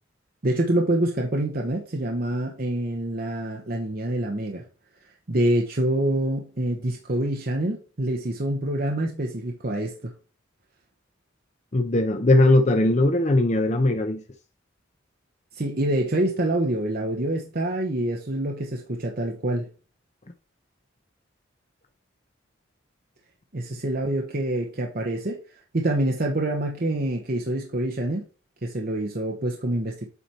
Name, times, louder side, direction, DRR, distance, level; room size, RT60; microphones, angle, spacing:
voice 1, 0.4-4.6 5.3-10.1 15.5-19.7 23.5-25.4 25.7-28.2 28.6-30.1, right 1 dB, 45° right, 0.9 m, -26 dB
voice 2, 11.7-14.2, left 2 dB, 35° left, 0.7 m, -19 dB
8.1 x 4.4 x 4.2 m
head